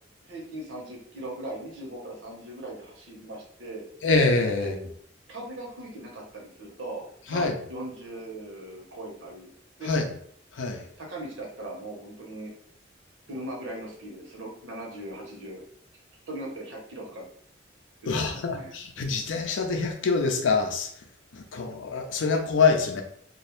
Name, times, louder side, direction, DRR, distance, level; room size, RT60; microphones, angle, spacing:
voice 1, 0.3-3.8 4.6-4.7 5.3-9.5 9.8-9.9 11.0-12.5 13.3-15.6 16.3-17.3 18.1-18.7, right 1 dB, 90° right, -1 dB, 0.8 m, -39 dB
voice 2, 4.0-4.8 7.3-7.6 9.8-10.0 10.5-10.9 18.1-20.9 21.3-23.0, left 4 dB, 80° left, 4 dB, 0.5 m, -25 dB
2.3 x 2.0 x 2.9 m, 0.64 s
head